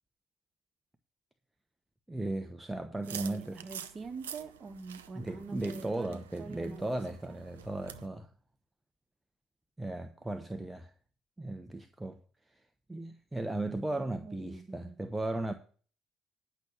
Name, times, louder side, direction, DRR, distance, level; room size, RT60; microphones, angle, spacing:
voice 1, 2.1-3.6 5.1-8.3 9.8-10.9 11.4-12.2 12.5-12.6 12.9-15.5, right 2 dB, 10° right, 1.1 m, -36 dB
voice 2, 3.0-6.9 7.3-7.4 13.9-15.0, right 4 dB, 40° right, 1.8 m, -45 dB
sound 1, 3.0-8.1, right 9 dB, 90° right, 0.6 m, -47 dB
10.5 x 6.3 x 7.2 m
hypercardioid pair, 55°, 0 cm